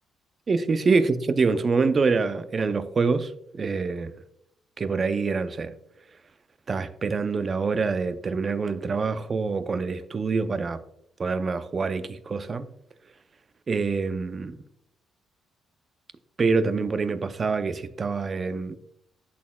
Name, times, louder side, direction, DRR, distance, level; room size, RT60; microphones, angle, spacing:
voice 1, 0.5-4.1 4.8-5.7 6.7-10.8 11.2-12.7 13.7-14.6 16.4-18.8, right 4 dB, 40° right, 0.5 m, -25 dB
11.0 x 4.2 x 2.3 m
cardioid pair, 90°, 0 cm